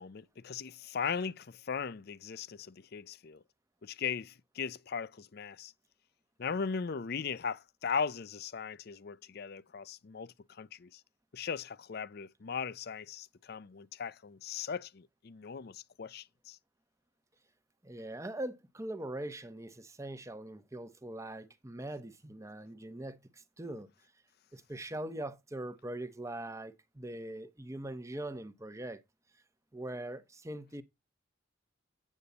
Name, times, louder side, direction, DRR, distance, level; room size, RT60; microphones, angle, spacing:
voice 1, 0.0-3.4 3.8-5.7 6.4-11.0 11.3-16.6, left 6 dB, 50° left, 0.5 m, -38 dB
voice 2, 17.8-23.9 24.5-29.0 29.7-30.8, right 1 dB, 15° right, 0.9 m, -42 dB
8.7 x 8.2 x 4.0 m
head